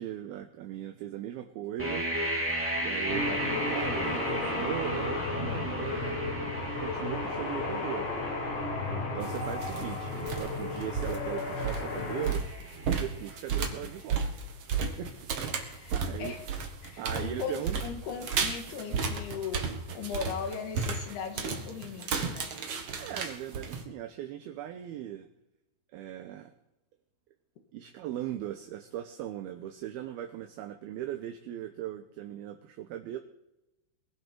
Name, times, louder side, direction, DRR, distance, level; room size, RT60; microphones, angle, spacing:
voice 1, 0.0-2.1 2.8-6.2 6.8-8.1 8.9-12.4 12.8-14.2 14.7-15.1 15.4-15.5 15.9-16.3 17.0-17.8 23.0-25.3 25.9-26.5 27.7-33.2, right 12 dB, 75° right, 2.5 m, -38 dB
sound 1, 1.8-13.6, right 1 dB, 5° right, 1.7 m, -36 dB
sound 2, 3.1-12.3, left 3 dB, 85° left, 6.0 m, -34 dB
sound 3, 9.2-9.8 10.1-10.5 10.8-23.8, right 5 dB, 55° right, 1.7 m, -33 dB
voice 2, 15.6-16.4 16.8-22.5, left 6 dB, 65° left, 3.7 m, -38 dB
22.5 x 11.5 x 4.5 m
omnidirectional pair, 5.1 m